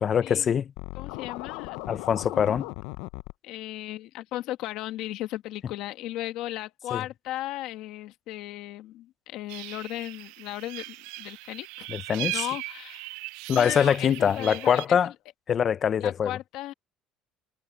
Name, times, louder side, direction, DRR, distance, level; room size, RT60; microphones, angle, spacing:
voice 1, 0.0-0.7 1.9-2.7 6.9-7.0 11.9-12.4 13.5-15.1 15.5-16.3, left 8 dB, 30° left, 0.4 m, -23 dB
Scratching (performance technique), 0.8-3.3, left 21 dB, 85° left, 0.5 m, -37 dB
voice 2, 1.0-2.0 3.4-11.9 12.3-13.2 13.5-15.1 16.0-16.7, left 15 dB, 60° left, 1.5 m, -36 dB
sound 1, 9.5-14.8, right 23 dB, 90° right, 0.3 m, -38 dB
cardioid pair, 170°, 0 cm